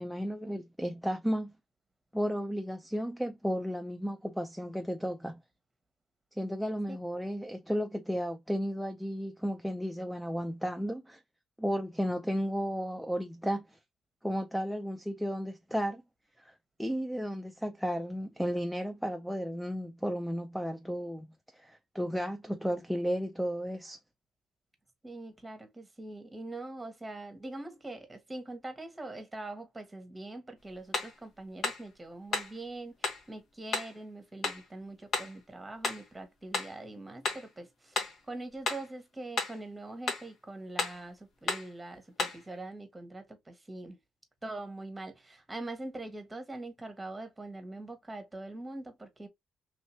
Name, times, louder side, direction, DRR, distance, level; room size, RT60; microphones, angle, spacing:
voice 1, 0.0-1.5 2.1-5.4 6.4-11.2 11.6-13.8 14.2-16.0 16.4-16.5 16.8-21.3 21.5-24.0, equal, ahead, 0.5 m, -33 dB
voice 2, 25.0-44.0 44.4-49.3, right 2 dB, 15° right, 1.1 m, -43 dB
sound 1, 30.9-31.2 31.6-31.9 32.3-32.6 33.0-33.2 33.7-34.0 34.4-34.7 35.1-35.4 35.8-36.1 36.5-36.8 37.2-37.5 38.0-38.2 38.7-38.9 39.4-39.6 40.1-40.3 40.8-41.0 41.5-41.7 42.2-42.4, left 3 dB, 55° left, 1.1 m, -33 dB
3.2 x 2.8 x 3.0 m
cardioid pair, 95°, 0 cm